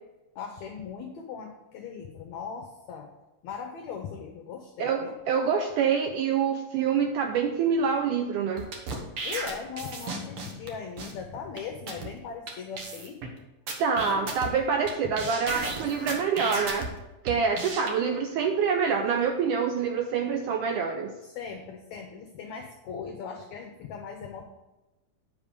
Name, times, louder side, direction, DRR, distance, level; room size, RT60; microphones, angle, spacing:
voice 1, 0.3-3.1 3.4-5.2 9.2-13.2 14.1-14.4 15.0-15.1 21.2-24.4, left 6 dB, 85° left, 4 dB, 1.6 m, -39 dB
voice 2, 4.8-8.7 13.8-16.9 17.2-21.1, right 6 dB, 85° right, 4 dB, 1.8 m, -26 dB
sound 1, 8.6-10.7 11.0-11.1 11.6-11.7 11.9-12.1 12.5-12.6 12.8-13.3 13.7-14.9 15.2-16.9 17.3-17.9, right 3 dB, 65° right, 1.4 m, -34 dB
10.0 x 5.5 x 5.2 m, 1.0 s
omnidirectional pair, 4.3 m